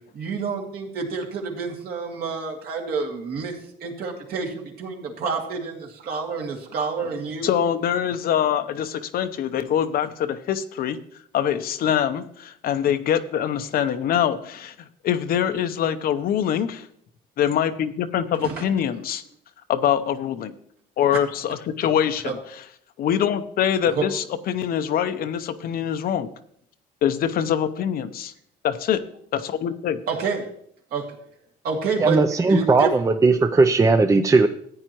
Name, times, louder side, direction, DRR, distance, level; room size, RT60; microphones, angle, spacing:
voice 1, 0.1-3.5 3.8-7.5 18.4-18.6 22.2-22.3 24.0-24.1 30.1-30.5 30.9-31.1 31.6-32.2 32.5-32.9, right 5 dB, 65° right, 1 dB, 2.3 m, -28 dB
voice 2, 7.4-11.0 11.3-14.7 15.0-16.9 17.4-19.2 19.7-20.5 21.0-22.6 23.0-26.3 27.0-28.3 28.6-29.0 29.3-30.0, left 9 dB, 60° left, 10 dB, 0.8 m, -24 dB
voice 3, 32.0-34.5, right 3 dB, 20° right, 8 dB, 0.5 m, -17 dB
14.5 x 9.0 x 3.0 m, 0.67 s
cardioid pair, 110°, 17 cm